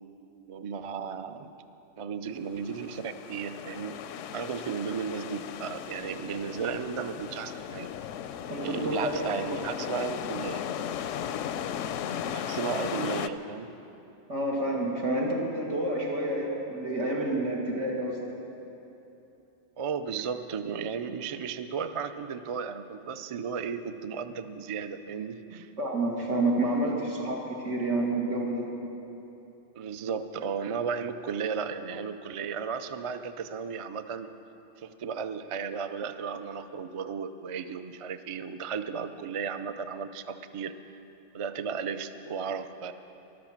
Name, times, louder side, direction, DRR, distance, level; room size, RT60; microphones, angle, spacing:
voice 1, 0.5-1.5 2.0-4.0 4.3-7.9 8.6-10.6 12.3-13.7 19.8-25.7 29.8-34.3 34.8-41.0 41.3-42.9, right 6 dB, 50° right, 10 dB, 0.4 m, -34 dB
sound 1, 2.5-13.3, left 9 dB, 85° left, 0.9 m, -36 dB
voice 2, 8.5-9.2 9.5-9.6 14.3-18.2 25.8-28.8, right 1 dB, 85° right, -1 dB, 2.3 m, -29 dB
13.5 x 12.0 x 7.3 m, 3.0 s
omnidirectional pair, 1.2 m